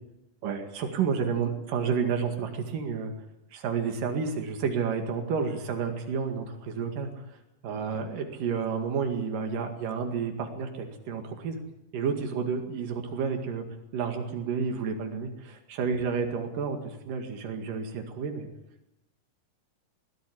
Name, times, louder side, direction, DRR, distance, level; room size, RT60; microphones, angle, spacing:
voice 1, 0.4-3.1 3.5-7.2 7.6-11.6 11.9-13.7 13.9-18.5, right 6 dB, 85° right, 5 dB, 3.7 m, -30 dB
21.0 x 14.5 x 9.8 m, 0.88 s
omnidirectional pair, 3.7 m